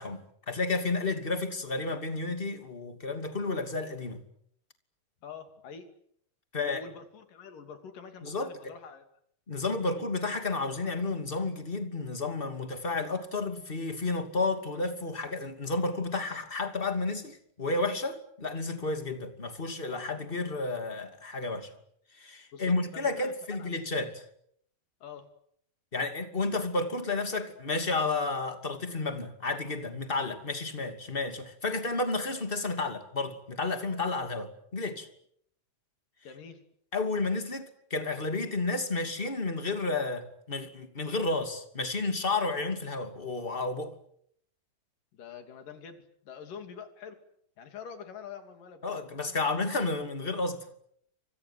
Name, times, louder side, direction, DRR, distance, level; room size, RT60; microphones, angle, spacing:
voice 1, 0.0-4.2 6.5-6.8 8.2-8.5 9.5-21.7 22.2-24.2 25.9-35.1 36.9-43.9 48.8-50.6, left 3 dB, 15° left, 2.3 m, -31 dB
voice 2, 5.2-5.9 6.6-9.1 9.8-9.9 22.5-23.7 25.0-25.3 36.2-36.6 45.1-47.2 47.6-48.9, left 6 dB, 70° left, 4.4 m, -46 dB
29.5 x 25.0 x 7.7 m
omnidirectional pair, 4.0 m